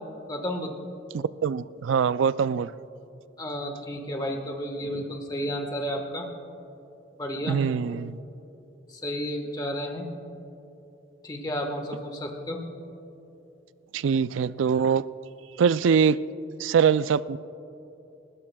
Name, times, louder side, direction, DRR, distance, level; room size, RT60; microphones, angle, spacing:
voice 1, 0.3-0.7 3.4-6.3 7.2-7.6 8.9-10.0 11.2-12.6, equal, 20° left, 2 dB, 1.3 m, -32 dB
voice 2, 1.1-2.7 7.5-8.2 13.9-15.0 15.6-16.2 16.6-17.4, right 6 dB, 85° right, 17 dB, 0.3 m, -23 dB
29.5 x 13.5 x 2.3 m, 2.9 s
head